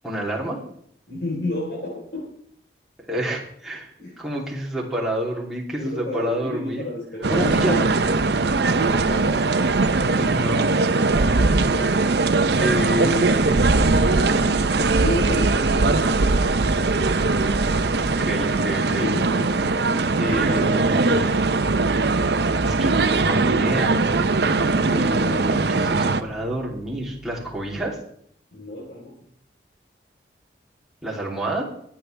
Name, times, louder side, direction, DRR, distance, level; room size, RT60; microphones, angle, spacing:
voice 1, 0.0-0.6 3.1-6.9 7.3-7.9 10.1-10.7 12.6-13.5 18.0-19.1 20.2-21.3 22.6-24.0 24.9-28.0 31.0-31.7, right 1 dB, 5° right, -6 dB, 3.0 m, -28 dB
voice 2, 1.1-2.3 4.0-4.2 5.8-7.8 8.9-10.0 11.1-12.0 14.7-17.0 19.0-19.8 28.5-29.1, left 2 dB, 55° left, -4 dB, 3.9 m, -32 dB
sound 1, 7.2-26.2, right 3 dB, 65° right, 0.7 m, -20 dB
sound 2, 11.3-27.8, equal, 80° left, 4.2 m, -46 dB
22.0 x 8.6 x 3.4 m, 0.67 s
head